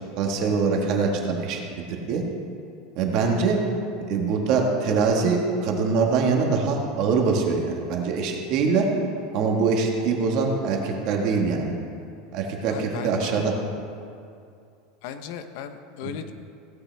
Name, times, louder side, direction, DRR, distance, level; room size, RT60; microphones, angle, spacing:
voice 1, 0.2-1.6 1.9-2.2 3.0-3.6 4.0-8.9 9.3-11.7 12.3-13.5, right 4 dB, 50° right, 1 dB, 1.6 m, -23 dB
voice 2, 12.7-13.5 15.0-16.3, left 8 dB, 60° left, 9 dB, 0.8 m, -36 dB
16.5 x 9.5 x 3.4 m, 2.4 s
supercardioid pair, 155°, 0 cm